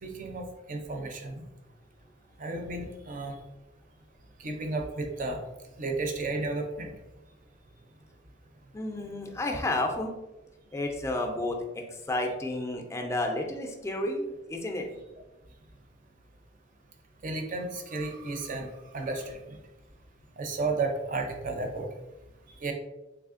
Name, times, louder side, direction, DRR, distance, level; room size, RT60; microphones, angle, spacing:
voice 1, 0.0-1.4 2.4-3.4 4.4-5.4 5.8-6.9 9.5-9.6 17.2-19.6 20.4-21.9 22.6-22.7, right 3 dB, 40° right, 4 dB, 0.5 m, -33 dB
voice 2, 8.7-10.1 10.7-14.9, left 1 dB, 15° left, 2 dB, 0.4 m, -31 dB
3.4 x 3.2 x 2.4 m, 1.0 s
head